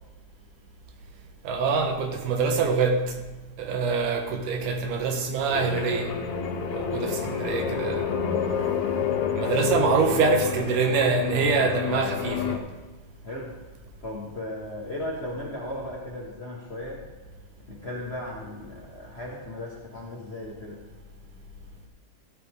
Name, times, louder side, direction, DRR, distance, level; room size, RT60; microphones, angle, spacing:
voice 1, 1.4-3.1 3.6-6.1 6.7-8.1 9.4-12.6, right 4 dB, 85° right, 5 dB, 2.7 m, -25 dB
sound 1, 5.5-12.6, left 7 dB, 70° left, 2.1 m, -29 dB
voice 2, 6.9-7.3 13.2-13.6 14.0-17.0 17.7-20.8, left 1 dB, 55° left, -4 dB, 0.7 m, -36 dB
15.0 x 8.0 x 3.7 m, 1.2 s
omnidirectional pair, 3.6 m